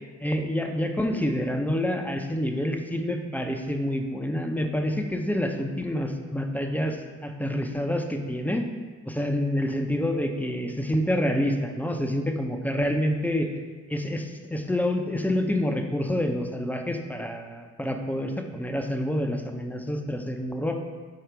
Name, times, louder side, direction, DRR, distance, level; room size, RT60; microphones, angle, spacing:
voice 1, 0.2-8.7 9.1-13.5 13.9-20.8, left 1 dB, 5° left, 4 dB, 0.7 m, -27 dB
6.8 x 4.6 x 4.5 m, 1.5 s
cardioid pair, 90°, 30 cm